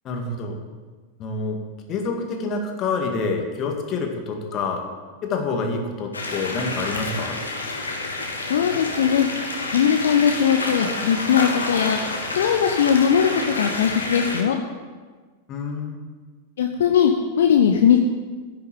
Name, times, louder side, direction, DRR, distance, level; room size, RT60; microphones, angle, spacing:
voice 1, 0.0-0.6 1.2-1.6 1.9-4.9 5.2-7.4 15.5-16.0, left 4 dB, 35° left, 3 dB, 2.0 m, -27 dB
sound 1, 6.1-14.4, left 2 dB, 75° left, 1.8 m, -29 dB
voice 2, 8.5-9.3 9.7-12.1 12.4-14.6 16.6-18.0, left 8 dB, 60° left, 4 dB, 0.8 m, -19 dB
10.5 x 6.9 x 8.9 m, 1.4 s
figure-of-eight pair, 90°, 0 cm